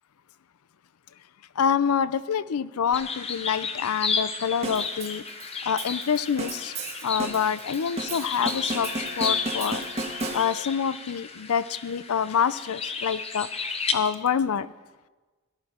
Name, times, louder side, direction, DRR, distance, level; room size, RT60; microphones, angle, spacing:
voice 1, 1.6-5.2 5.6-6.7 7.0-8.9 9.2-9.8 10.3-13.5 13.9-14.7, left 7 dB, 85° left, 17 dB, 0.5 m, -26 dB
sound 1, 2.9-13.9, left 5 dB, 25° left, 0.8 m, -33 dB
sound 2, 4.6-10.8, right 2 dB, 30° right, 1.3 m, -35 dB
17.5 x 11.5 x 4.3 m, 1.3 s
head